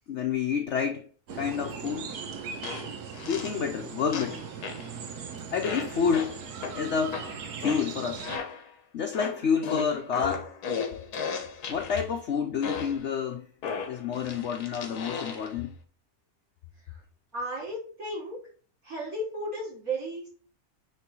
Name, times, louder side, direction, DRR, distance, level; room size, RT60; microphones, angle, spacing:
voice 1, 0.1-1.1 1.4-2.1 3.3-4.4 5.5-6.4 6.8-7.2 7.6-8.3 8.9-10.5 11.7-13.5 13.9-15.7, left 6 dB, 55° left, 1.0 m, -29 dB
sound 1, 1.3-8.4, right 6 dB, 85° right, 1.5 m, -39 dB
sound 2, 2.1-2.2 2.6-3.6 4.1-4.9 5.6-8.7 9.1-12.1 12.6-13.1 13.6-15.6, left 5 dB, 90° left, 1.6 m, -36 dB
voice 2, 17.3-18.4 18.8-20.3, right 1 dB, 65° right, 4.4 m, -34 dB
9.3 x 3.2 x 4.5 m
omnidirectional pair, 1.6 m